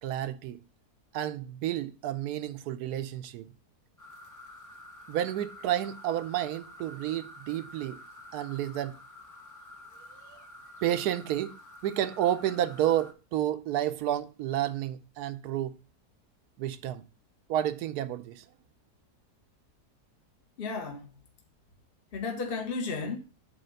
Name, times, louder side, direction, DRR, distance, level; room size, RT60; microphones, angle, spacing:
voice 1, 0.0-0.6 1.1-3.5 5.1-8.0 8.3-9.0 10.1-10.4 10.8-11.6 11.8-15.8 16.6-17.0 17.5-18.4, right 12 dB, 75° right, 1.1 m, -31 dB
sound 1, 4.0-13.1, left 1 dB, 20° left, 0.5 m, -49 dB
voice 2, 20.6-21.2 22.1-23.2, left 4 dB, 40° left, 1.1 m, -34 dB
8.4 x 3.5 x 6.7 m
omnidirectional pair, 1.7 m